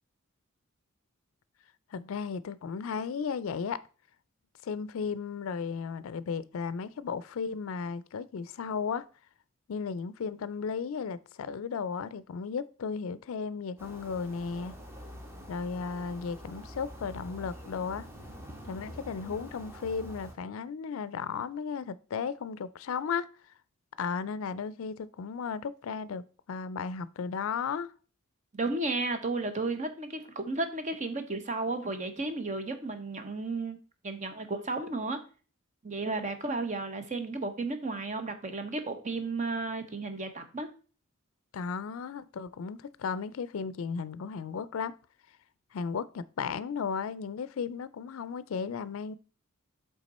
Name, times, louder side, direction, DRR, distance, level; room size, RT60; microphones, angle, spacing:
voice 1, 1.9-3.8 4.6-9.1 9.7-14.7 15.5-18.1 18.7-23.3 24.0-27.9 41.5-45.0 45.7-49.2, left 5 dB, 70° left, 0.4 m, -35 dB
sound 1, 13.8-20.3, equal, 10° right, 1.0 m, -46 dB
voice 2, 28.5-33.8 34.0-35.2 35.8-40.7, right 3 dB, 35° right, 0.8 m, -33 dB
8.2 x 3.6 x 4.1 m
head